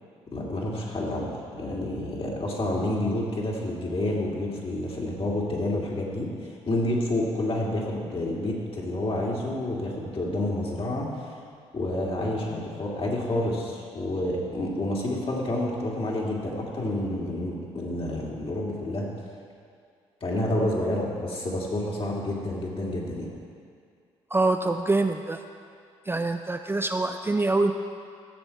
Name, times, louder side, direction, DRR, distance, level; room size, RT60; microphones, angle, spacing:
voice 1, 0.3-11.3 11.7-19.1 20.2-23.3, left 1 dB, 40° left, -3 dB, 2.6 m, -29 dB
voice 2, 24.3-25.4 26.1-27.7, right 2 dB, 15° right, 6 dB, 0.5 m, -25 dB
13.5 x 7.1 x 4.2 m, 2.2 s
hypercardioid pair, 50°, 14 cm